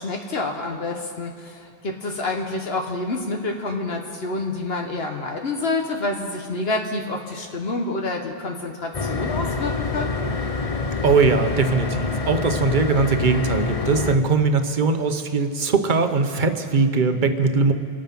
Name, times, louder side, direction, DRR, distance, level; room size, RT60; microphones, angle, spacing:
voice 1, 0.0-10.3, left 2 dB, 75° left, 2 dB, 1.4 m, -28 dB
sound 1, 8.9-14.2, left 4 dB, 35° left, 0.8 m, -26 dB
voice 2, 11.0-17.7, right 4 dB, 50° right, 7 dB, 1.1 m, -20 dB
26.5 x 9.0 x 5.9 m, 2.3 s
omnidirectional pair, 1.0 m